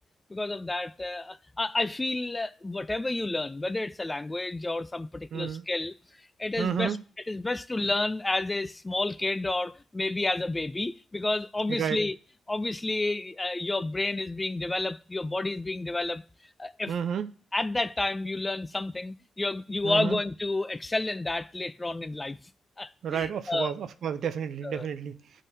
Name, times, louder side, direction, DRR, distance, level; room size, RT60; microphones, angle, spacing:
voice 1, 0.3-6.0 6.4-7.0 7.3-12.2 12.5-16.2 16.6-16.9 17.5-22.4 22.8-23.7 24.6-24.9, left 2 dB, 20° left, 0.3 m, -30 dB
voice 2, 5.3-5.6 6.6-7.0 11.7-12.0 16.9-17.3 19.8-20.2 23.0-25.2, right 8 dB, 70° right, 0.5 m, -31 dB
10.5 x 3.7 x 2.7 m
cardioid pair, 70°, 0 cm